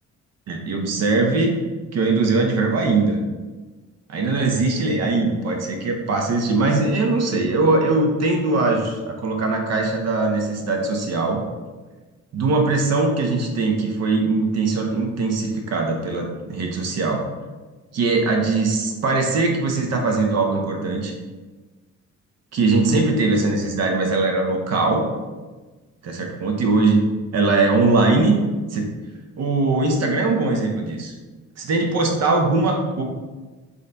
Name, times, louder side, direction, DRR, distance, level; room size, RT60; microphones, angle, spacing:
voice 1, 0.5-1.5 1.9-3.2 4.1-11.4 12.3-17.2 17.9-21.1 22.5-25.0 26.0-27.0 27.3-28.3 28.7-28.9 29.4-31.1 31.6-33.0, right 3 dB, 60° right, 2 dB, 0.7 m, -21 dB
3.8 x 2.2 x 3.8 m, 1.3 s
cardioid pair, 90°, 30 cm